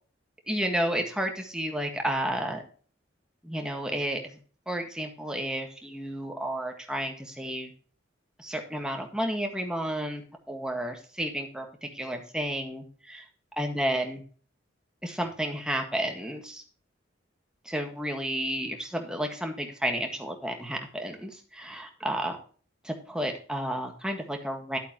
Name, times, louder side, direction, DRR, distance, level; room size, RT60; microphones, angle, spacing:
voice 1, 0.5-2.6 3.4-4.4 4.6-7.7 8.4-13.2 13.6-14.2 15.0-16.6 17.6-22.4 22.8-24.8, equal, 5° right, 3 dB, 1.7 m, -31 dB
11.5 x 8.3 x 3.0 m, 0.42 s
head